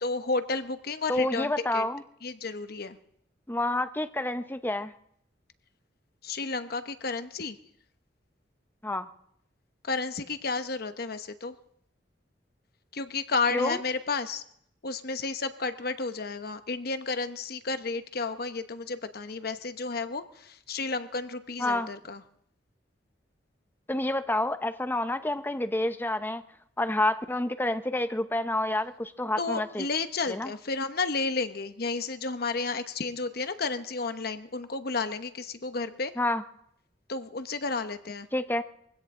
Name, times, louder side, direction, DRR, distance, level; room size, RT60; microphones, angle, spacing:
voice 1, 0.0-1.8 2.2-3.0 6.2-7.6 9.8-11.5 12.9-14.4 14.8-22.2 29.4-36.1 37.1-38.3, left 4 dB, 60° left, 9 dB, 1.0 m, -32 dB
voice 2, 1.1-2.0 3.5-4.9 8.8-9.1 13.5-13.8 21.6-21.9 23.9-26.4 26.8-29.9 30.3-30.5 36.2-36.4 38.3-38.6, left 1 dB, 10° left, 10 dB, 0.7 m, -28 dB
22.0 x 16.5 x 3.8 m, 0.70 s
head